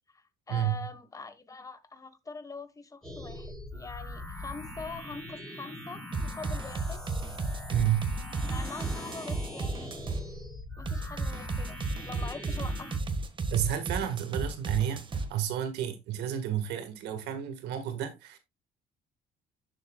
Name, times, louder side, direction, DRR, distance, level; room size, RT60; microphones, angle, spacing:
voice 1, 0.1-7.0 8.4-9.9 10.8-12.9, left 4 dB, 20° left, 1.3 m, -43 dB
sound 1, 3.0-13.0, left 1 dB, 5° left, 5.7 m, -41 dB
sound 2, 6.1-10.3 10.9-15.3, right 3 dB, 30° right, 1.5 m, -33 dB
voice 2, 7.7-8.1 13.5-18.4, right 11 dB, 85° right, 1.6 m, -31 dB
10.5 x 7.0 x 2.3 m
cardioid pair, 110°, 17 cm